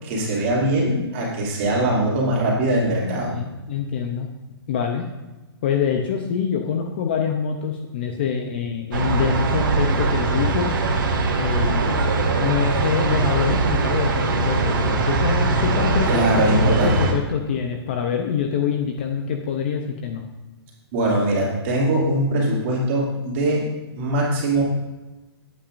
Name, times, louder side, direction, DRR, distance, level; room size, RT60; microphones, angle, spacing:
voice 1, 0.0-3.3 16.0-16.9 20.9-23.6 24.0-24.6, right 1 dB, 25° right, -4 dB, 2.6 m, -21 dB
voice 2, 3.0-4.3 4.7-5.1 5.6-10.7 11.4-12.1 12.4-16.1 16.5-20.3, left 7 dB, 25° left, 4 dB, 0.6 m, -25 dB
sound 1, 8.9-17.1, right 3 dB, 50° right, 1.8 m, -21 dB
17.0 x 8.7 x 2.5 m, 1.1 s
hypercardioid pair, 175°, 14 cm